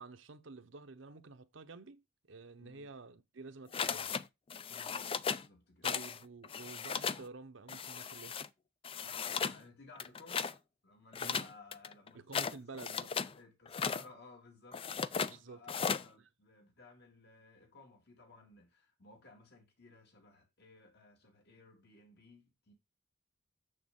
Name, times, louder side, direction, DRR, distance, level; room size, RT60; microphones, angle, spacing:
voice 1, 0.0-4.2 5.8-8.4 11.2-11.4 12.1-13.1 15.3-15.9, right 3 dB, 70° right, 0.8 m, -50 dB
voice 2, 2.6-2.9 4.7-5.9 9.0-22.7, left 3 dB, 60° left, 2.3 m, -58 dB
sound 1, 3.7-4.2 4.5-5.5 5.8-6.2 6.4-7.2 7.7-8.5 8.8-9.6 10.0-10.5 11.1-13.3 13.7-14.1 14.7-15.3 15.7-16.1, left 6 dB, 30° left, 0.4 m, -36 dB
6.9 x 6.5 x 3.7 m
head